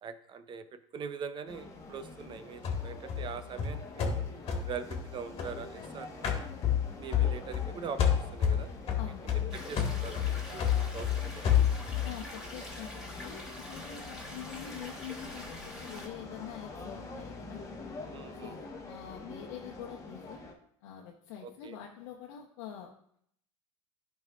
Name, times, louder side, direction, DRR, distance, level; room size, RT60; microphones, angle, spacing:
voice 1, 0.0-4.2 4.6-6.3 6.9-8.7 9.5-11.6 18.1-18.6 21.4-21.8, right 6 dB, 30° right, 12 dB, 0.6 m, -43 dB
sound 1, 1.5-20.5, left 3 dB, 20° left, 1.3 m, -46 dB
sound 2, 2.6-5.9 6.2-7.7 8.0-12.1, left 9 dB, 35° left, 1.7 m, -29 dB
voice 2, 9.0-9.3 12.0-17.6 18.3-20.5 20.8-22.9, left 10 dB, 70° left, -1 dB, 1.0 m, -45 dB
sound 3, 9.5-16.1, left 1 dB, 5° right, 2.9 m, -46 dB
11.5 x 5.3 x 2.5 m, 0.68 s
hypercardioid pair, 105°, 16 cm